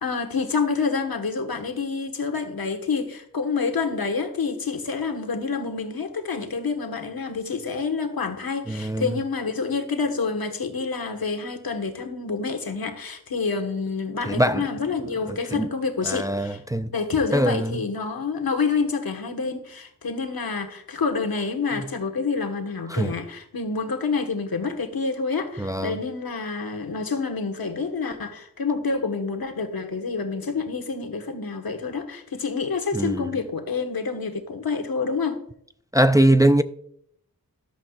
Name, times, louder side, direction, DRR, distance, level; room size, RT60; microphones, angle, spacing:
voice 1, 0.0-16.6 16.9-35.4, left 4 dB, 90° left, 1.5 m, -28 dB
voice 2, 8.7-9.1 14.3-14.7 15.5-15.7 16.1-16.9 17.3-17.7 22.9-23.1 25.6-26.0 32.9-33.2 35.9-36.6, right 1 dB, 10° right, 0.4 m, -21 dB
14.0 x 11.5 x 2.4 m
wide cardioid pair, 90°, 35 cm